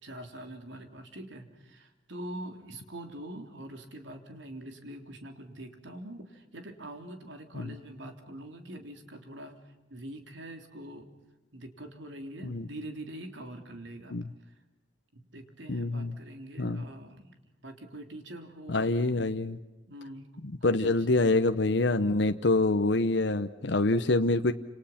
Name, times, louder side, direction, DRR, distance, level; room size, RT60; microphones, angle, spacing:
voice 1, 0.0-11.1 11.5-14.1 14.5-14.6 15.1-17.3 17.6-19.1 19.9-21.1, right 1 dB, 75° right, 5 dB, 3.5 m, -44 dB
voice 2, 15.7-16.1 16.6-16.8 18.7-19.6 20.4-24.5, left 2 dB, 65° left, 8 dB, 0.9 m, -26 dB
29.5 x 27.5 x 5.9 m, 1.1 s
head